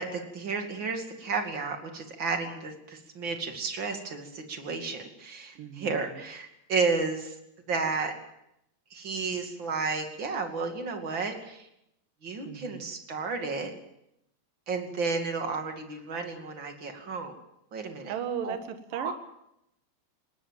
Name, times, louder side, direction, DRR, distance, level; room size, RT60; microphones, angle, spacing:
voice 1, 0.0-7.4 7.7-8.1 8.9-11.7 12.2-13.7 14.7-17.3 17.7-18.1 18.4-18.6 18.9-19.1, right 4 dB, 35° right, 4 dB, 2.6 m, -32 dB
voice 2, 5.6-6.2 12.4-12.9 18.0-19.1, right 8 dB, 65° right, 8 dB, 3.0 m, -36 dB
20.0 x 19.5 x 7.5 m, 0.82 s
omnidirectional pair, 4.4 m